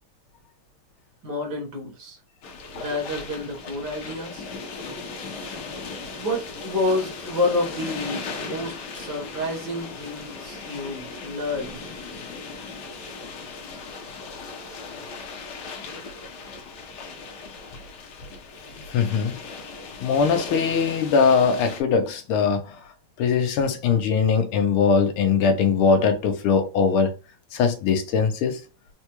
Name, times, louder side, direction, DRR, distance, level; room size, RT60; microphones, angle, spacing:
voice 1, 1.2-2.2 2.7-4.5 6.1-11.9, left 2 dB, 55° right, 1.5 m, -29 dB
sound 1, 2.4-21.8, left 4 dB, 65° left, 1.1 m, -37 dB
voice 2, 18.9-19.4 20.0-22.8 23.2-27.1 27.5-28.6, left 5 dB, 80° left, 1.6 m, -21 dB
4.4 x 2.2 x 2.9 m
omnidirectional pair, 2.4 m